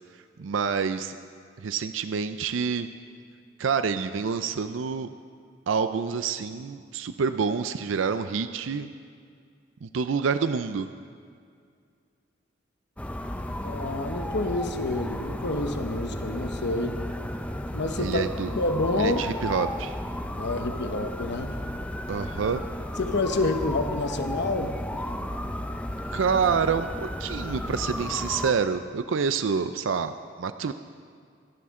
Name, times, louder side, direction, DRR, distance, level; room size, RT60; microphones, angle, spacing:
voice 1, 0.4-1.2 1.6-2.9 3.6-5.1 5.7-8.9 9.8-10.9 18.0-18.5 19.0-19.9 22.1-22.6 26.1-30.1 30.4-30.7, right 6 dB, 75° right, 10 dB, 0.5 m, -27 dB
sound 1, 13.0-28.5, left 1 dB, 5° left, 0.7 m, -33 dB
voice 2, 13.6-17.0 17.7-18.2 18.6-19.2 20.4-21.5 23.0-24.8, left 2 dB, 60° left, 7 dB, 1.0 m, -28 dB
24.5 x 11.5 x 3.7 m, 2.2 s
head